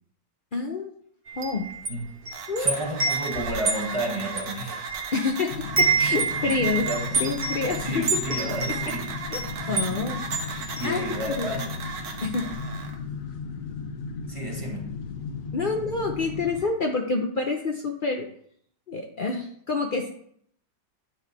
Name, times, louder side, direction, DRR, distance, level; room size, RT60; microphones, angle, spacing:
voice 1, 0.5-0.9 1.4-1.6 2.5-2.9 5.1-5.5 5.8-6.9 7.2-8.0 9.3-9.4 9.7-10.2 10.8-11.0 11.4-11.5 12.2-12.4 15.5-18.2 18.9-20.1, left 3 dB, 85° left, 1 dB, 0.4 m, -27 dB
Wind chime, 1.3-5.3 5.6-11.5, right 5 dB, 45° right, 0.8 m, -29 dB
sound 1, 2.3-12.9, right 4 dB, 65° right, 1.3 m, -37 dB
voice 2, 2.6-4.8 6.7-7.2 7.8-9.1 9.6-10.1 10.7-11.9 14.3-14.9, equal, 20° right, -1 dB, 1.2 m, -32 dB
sound 2, 5.5-16.7, left 5 dB, 60° left, 1.0 m, -36 dB
9.5 x 4.4 x 4.0 m, 0.65 s
omnidirectional pair, 1.9 m